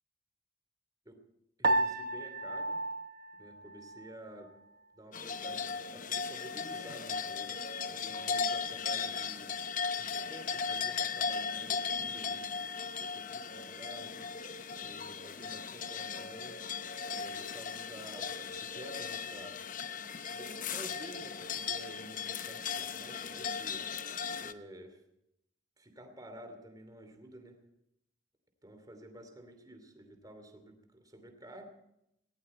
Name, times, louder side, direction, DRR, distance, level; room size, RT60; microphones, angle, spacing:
voice 1, 1.6-2.8 3.3-4.5 4.9-7.6 7.9-9.5 10.0-12.4 13.0-14.3 14.8-16.8 17.2-19.6 20.3-23.8 24.4-25.0 25.8-27.6 28.6-31.6, right 1 dB, 20° right, 6 dB, 2.9 m, -51 dB
Piano, 1.6-4.2, right 2 dB, 55° right, 0.9 m, -33 dB
sound 1, 5.1-24.5, left 6 dB, 45° left, 0.8 m, -37 dB
19.0 x 16.5 x 4.3 m, 0.81 s
head